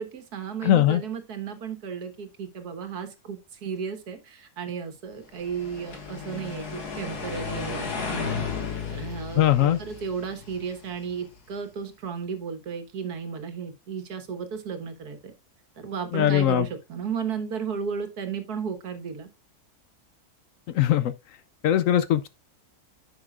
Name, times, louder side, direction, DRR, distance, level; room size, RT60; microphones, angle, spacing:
voice 1, 0.0-8.4 8.9-15.3 15.8-19.3, right 6 dB, 80° right, 1.8 m, -34 dB
voice 2, 0.6-1.0 9.4-9.8 16.1-16.7 20.7-21.1 21.6-22.3, left 12 dB, 70° left, 0.9 m, -20 dB
sound 1, 5.4-11.5, left 5 dB, 90° left, 2.2 m, -34 dB
10.0 x 6.7 x 2.4 m
omnidirectional pair, 1.6 m